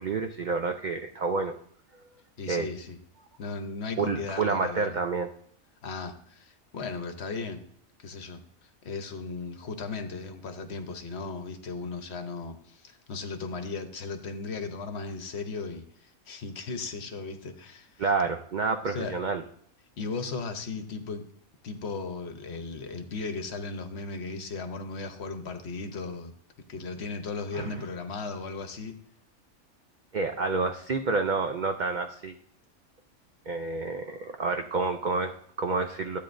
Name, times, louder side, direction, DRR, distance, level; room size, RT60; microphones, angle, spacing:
voice 1, 0.0-1.5 2.5-2.7 4.0-5.3 18.0-19.4 27.5-27.8 30.1-32.4 33.5-36.2, right 4 dB, 85° right, 5 dB, 0.4 m, -29 dB
voice 2, 2.4-3.0 3.4-5.0 5.8-7.6 8.0-8.4 8.8-18.1 18.9-19.1 20.0-21.3 21.6-26.3 26.7-28.9, left 4 dB, 55° left, 7 dB, 1.0 m, -36 dB
13.0 x 8.4 x 2.6 m, 0.64 s
omnidirectional pair, 1.5 m